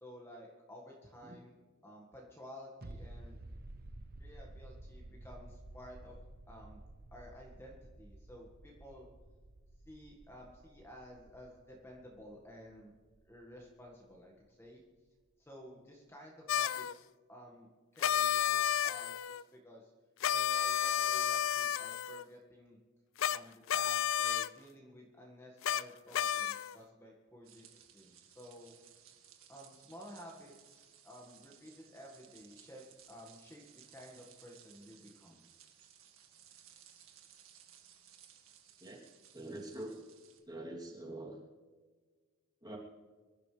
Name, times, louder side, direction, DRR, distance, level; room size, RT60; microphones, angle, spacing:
voice 1, 0.0-1.6 1.8-3.4 4.2-6.8 7.1-9.1 9.9-12.9 13.2-14.8 15.4-19.9 20.3-22.8 23.3-28.8 29.5-35.4, equal, 10° left, -2 dB, 1.8 m, -53 dB
sound 1, 2.8-14.1 14.4-14.5, right 1 dB, 50° right, 0.9 m, -53 dB
sound 2, 16.5-16.9 18.0-19.4 20.2-22.2 23.2-23.4 23.7-24.5 25.6-25.8 26.1-26.8, left 9 dB, 65° left, 0.4 m, -31 dB
sound 3, 27.4-40.4, right 9 dB, 80° right, 1.9 m, -60 dB
voice 2, 39.3-40.0 40.5-41.4 42.6-42.8, right 1 dB, 20° right, -2 dB, 3.1 m, -44 dB
24.5 x 12.0 x 3.4 m, 1.4 s
head